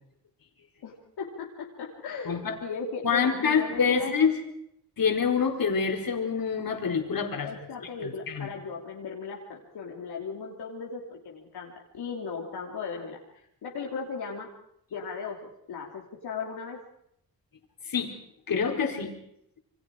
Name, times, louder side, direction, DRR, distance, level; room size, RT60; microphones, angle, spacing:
voice 1, 0.8-4.1 7.4-14.5 14.9-16.8, left 5 dB, 85° left, -1 dB, 3.2 m, -37 dB
voice 2, 2.3-2.6 3.0-4.4 5.0-7.5 7.8-8.5 17.9-18.2 18.5-19.1, left 6 dB, 65° left, 3 dB, 4.3 m, -26 dB
28.0 x 23.5 x 4.9 m, 0.75 s
cardioid pair, 70°, 37 cm